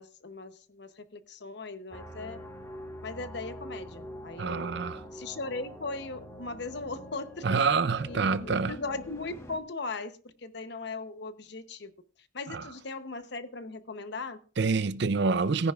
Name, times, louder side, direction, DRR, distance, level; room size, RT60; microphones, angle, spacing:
voice 1, 0.0-2.4 3.0-4.8 5.1-7.6 8.1-10.1 10.4-11.9 12.3-14.4, left 3 dB, 55° left, 0.9 m, -38 dB
sound 1, 1.9-9.6, equal, 15° left, 1.3 m, -44 dB
voice 2, 4.4-5.0 7.4-8.8 12.5-12.7 14.6-15.7, right 4 dB, 60° right, 0.5 m, -27 dB
18.0 x 10.0 x 2.4 m
head